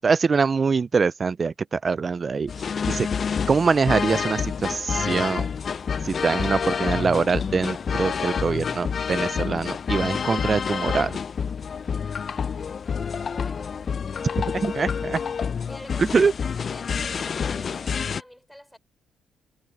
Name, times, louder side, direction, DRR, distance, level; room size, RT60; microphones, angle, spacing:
voice 1, 0.0-2.5 2.9-3.1 3.5-5.5 6.0-11.1 14.5-15.2 16.0-16.3, right 5 dB, 35° right, 0.3 m, -23 dB
sound 1, 2.5-18.2, left 6 dB, 45° left, 0.5 m, -28 dB
voice 2, 13.1-14.2 15.7-18.8, equal, 5° left, 4.3 m, -47 dB
cardioid pair, 90°, 0 cm